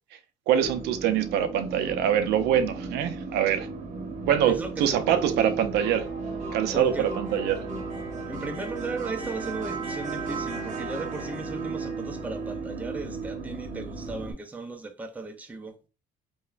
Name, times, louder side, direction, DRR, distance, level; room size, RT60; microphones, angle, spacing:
voice 1, 0.5-3.7 4.2-6.1 6.5-7.6, right 9 dB, 80° right, 0.4 m, -24 dB
sound 1, 0.6-14.3, right 4 dB, 45° right, 0.7 m, -35 dB
voice 2, 4.5-5.7 6.7-7.1 8.3-15.8, right 3 dB, 10° right, 0.4 m, -36 dB
2.9 x 2.1 x 2.4 m
cardioid pair, 110°, 17 cm